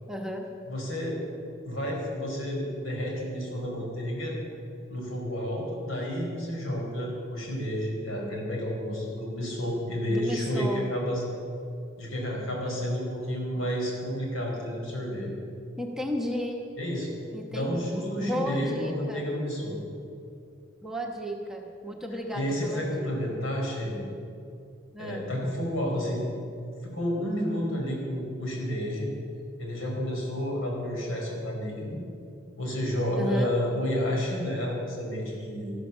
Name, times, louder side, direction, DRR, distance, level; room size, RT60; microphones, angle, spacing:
voice 1, 0.1-0.5 10.1-10.8 15.8-16.6 17.3-17.8 18.2-19.2 20.8-23.1 24.9-25.2 33.1-33.5, equal, ahead, 1 dB, 1.1 m, -33 dB
voice 2, 0.7-1.2 1.6-4.3 4.9-11.2 12.0-15.3 16.8-17.1 17.5-19.8 22.3-24.1 25.0-26.3 26.8-29.1 29.6-32.0 32.6-35.7, equal, 85° left, -1 dB, 4.7 m, -30 dB
13.5 x 13.0 x 7.2 m, 2.5 s
head